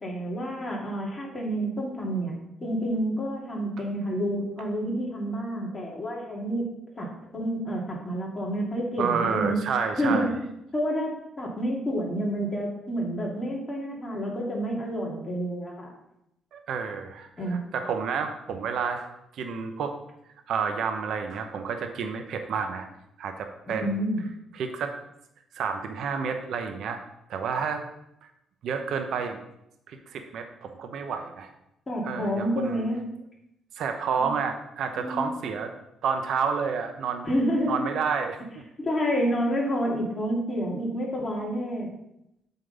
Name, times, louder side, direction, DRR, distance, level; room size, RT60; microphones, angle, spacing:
voice 1, 0.0-6.7 7.0-9.6 10.0-10.4 10.7-15.9 17.4-17.6 23.7-24.2 31.9-33.0 34.2-34.3 35.0-35.4 37.2-37.8 38.8-41.9, equal, 30° left, -3 dB, 2.4 m, -29 dB
voice 2, 9.0-10.3 16.5-20.0 20.5-22.9 23.2-24.1 24.5-25.0 25.5-27.0 27.3-27.8 28.6-29.4 29.9-31.5 32.0-32.8 33.8-35.7 36.0-37.3 37.7-38.4, right 6 dB, 70° right, 6 dB, 0.8 m, -30 dB
7.9 x 3.8 x 5.1 m, 0.83 s
cardioid pair, 90°, 0 cm